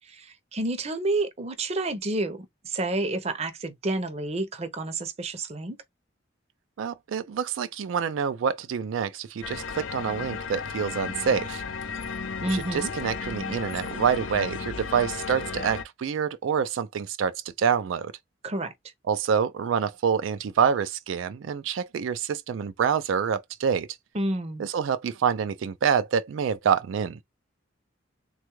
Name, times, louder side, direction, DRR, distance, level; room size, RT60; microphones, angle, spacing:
voice 1, 0.0-5.8 12.4-12.9 18.4-18.7 24.1-24.7, right 2 dB, 35° right, 0.6 m, -29 dB
voice 2, 6.8-11.6 12.5-18.1 19.1-23.9 24.6-27.2, right 7 dB, 80° right, 0.3 m, -27 dB
sound 1, 9.4-15.8, left 5 dB, 85° left, 0.6 m, -34 dB
3.5 x 2.3 x 3.0 m
head